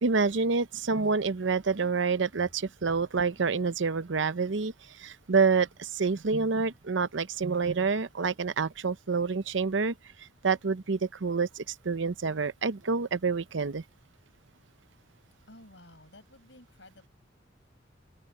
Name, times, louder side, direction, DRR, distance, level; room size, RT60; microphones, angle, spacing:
voice 1, 0.0-4.7 5.0-9.9 10.4-13.8, right 4 dB, 75° right, 0.7 m, -27 dB
voice 2, 15.5-17.1, left 1 dB, 70° left, 7.4 m, -53 dB
open air
head